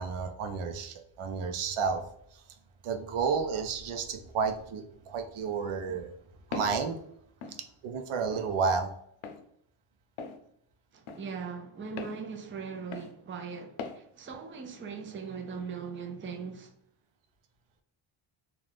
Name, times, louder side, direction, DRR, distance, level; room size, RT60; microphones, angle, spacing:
voice 1, 0.0-2.0 2.8-6.1 6.5-7.0 7.8-8.9, right 5 dB, 85° right, 0.6 m, -31 dB
Walk footsteps, 6.5-6.8 7.4-7.6 8.3-8.5 9.2-9.4 10.2-10.4 11.1-11.2 12.0-12.2 12.9-13.1 13.8-14.0, left 5 dB, 70° left, 0.6 m, -39 dB
voice 2, 10.9-16.7, right 5 dB, 25° right, 0.4 m, -40 dB
2.4 x 2.3 x 3.3 m
cardioid pair, 85°, 49 cm